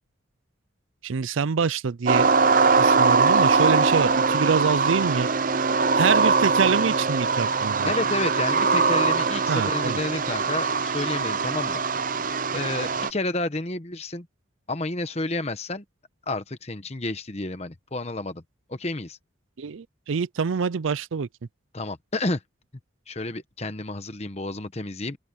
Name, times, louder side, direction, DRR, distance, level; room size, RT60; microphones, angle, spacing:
voice 1, 1.0-2.3 2.8-5.3 5.9-7.9 9.5-10.0 19.6-21.3, right 5 dB, 80° right, 0.5 m, -25 dB
sound 1, 2.1-13.1, right 4 dB, 45° right, 0.7 m, -22 dB
voice 2, 7.8-11.8 12.5-14.3 14.7-15.8 16.3-18.4 18.7-19.2 21.7-22.4 23.1-25.2, left 2 dB, 30° left, 1.1 m, -30 dB
open air
head